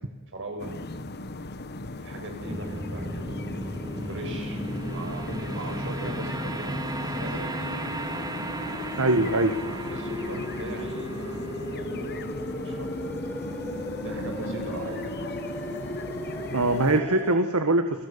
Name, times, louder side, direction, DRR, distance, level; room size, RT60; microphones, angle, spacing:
voice 1, 0.3-0.7 2.0-4.6 4.9-6.8 7.0-7.8 9.5-12.9 14.0-15.3, right 2 dB, 60° right, 3 dB, 6.9 m, -39 dB
sound 1, 0.6-17.0, left 2 dB, 50° left, 1.4 m, -38 dB
sound 2, 2.4-17.3, equal, 10° left, 4.4 m, -36 dB
sound 3, 2.4-13.6, right 2 dB, 20° right, 2.0 m, -38 dB
voice 2, 9.0-9.5 16.5-18.1, right 2 dB, 75° right, 7 dB, 1.7 m, -22 dB
29.0 x 22.0 x 7.0 m, 1.2 s
head